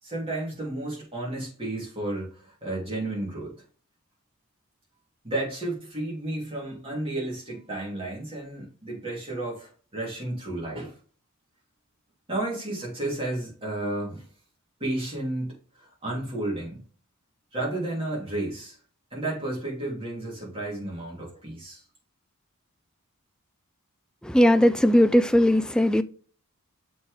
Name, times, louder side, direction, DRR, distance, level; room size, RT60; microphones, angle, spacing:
voice 1, 0.0-3.5 5.2-11.0 12.3-14.3 14.8-16.8 17.5-18.8 19.1-21.8, right 2 dB, 25° right, 3.2 m, -32 dB
voice 2, 24.2-26.0, equal, 5° left, 0.3 m, -19 dB
7.0 x 4.3 x 3.4 m
head